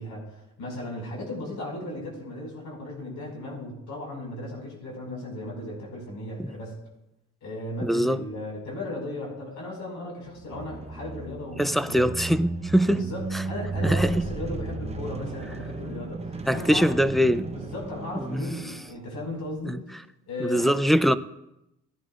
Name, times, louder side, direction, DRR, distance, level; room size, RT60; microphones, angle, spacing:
voice 1, 0.0-6.7 7.4-12.1 12.9-16.9 17.7-19.8 20.3-20.7, left 1 dB, 75° left, 5.6 m, -36 dB
voice 2, 7.8-8.2 11.6-13.0 13.3-13.4 13.8-14.2 16.5-17.5 18.1-18.5 19.6-19.8 20.4-21.2, equal, ahead, 0.5 m, -23 dB
sound 1, 10.3-19.0, right 3 dB, 20° right, 0.9 m, -34 dB
18.0 x 12.0 x 2.5 m
cardioid pair, 90°, 30 cm